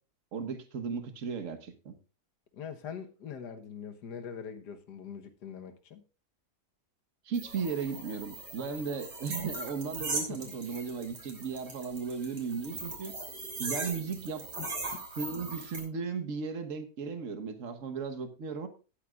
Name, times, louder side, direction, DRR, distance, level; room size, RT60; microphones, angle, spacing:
voice 1, 0.3-1.9 7.3-13.1 13.6-14.5 15.2-18.7, right 5 dB, 50° right, 1.5 m, -36 dB
voice 2, 2.5-6.0 10.3-10.5 14.6-15.0, left 7 dB, 80° left, 1.7 m, -43 dB
sound 1, 7.3-15.8, right 3 dB, 85° right, 4.0 m, -40 dB
18.0 x 8.4 x 2.4 m
omnidirectional pair, 1.8 m